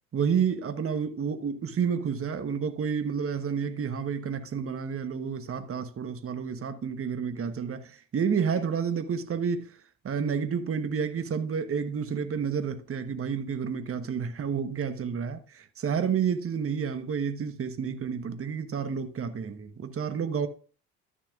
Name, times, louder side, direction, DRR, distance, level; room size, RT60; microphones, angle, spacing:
voice 1, 0.1-9.7 10.0-20.5, right 6 dB, 30° right, 1.1 m, -30 dB
12.5 x 7.0 x 2.4 m
hypercardioid pair, 60°, 41 cm